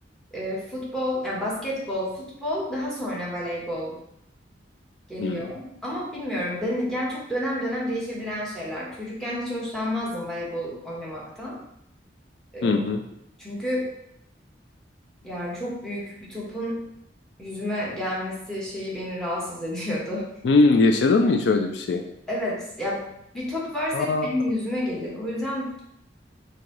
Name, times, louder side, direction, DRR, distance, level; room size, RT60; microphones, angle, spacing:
voice 1, 0.3-3.9 5.1-11.6 12.5-12.8 13.4-13.9 15.2-16.8 17.4-20.3 22.3-23.1 23.3-25.8, left 1 dB, 5° left, -5 dB, 1.3 m, -30 dB
voice 2, 5.2-5.5 12.6-13.0 20.4-22.0 23.9-24.3, left 3 dB, 70° left, 5 dB, 0.4 m, -20 dB
4.6 x 2.8 x 3.8 m, 0.77 s
head